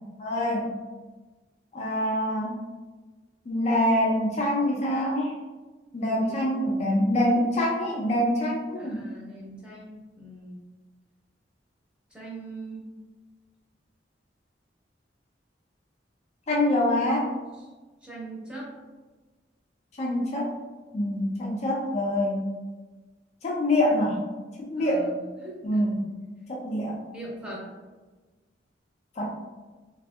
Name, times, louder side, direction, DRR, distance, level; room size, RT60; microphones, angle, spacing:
voice 1, 0.2-0.7 1.7-2.6 3.5-5.3 5.9-9.0 16.5-17.3 20.0-20.5 20.9-22.4 23.4-24.2 24.6-25.1 25.6-26.1 26.5-27.0 29.2-29.3, left 1 dB, 40° left, -2 dB, 0.4 m, -25 dB
voice 2, 6.0-6.4 8.8-10.7 12.1-12.9 18.0-18.7 24.7-25.8 27.1-27.7, right 2 dB, 5° right, -5 dB, 0.6 m, -41 dB
2.6 x 2.6 x 2.3 m, 1.3 s
head